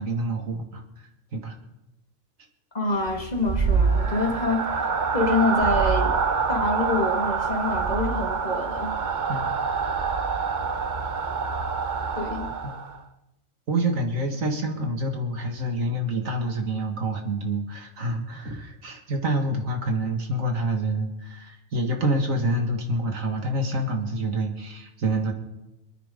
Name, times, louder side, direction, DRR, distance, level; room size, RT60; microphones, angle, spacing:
voice 1, 0.0-1.6 9.3-9.5 12.5-12.7 13.7-25.3, right 1 dB, 75° right, 3 dB, 2.2 m, -27 dB
voice 2, 2.7-6.2 6.5-9.0 12.2-12.5, left 2 dB, 30° left, 2 dB, 2.0 m, -26 dB
sound 1, 3.0-13.0, right 5 dB, 40° right, 0.9 m, -26 dB
27.0 x 9.6 x 3.8 m, 0.96 s
omnidirectional pair, 1.4 m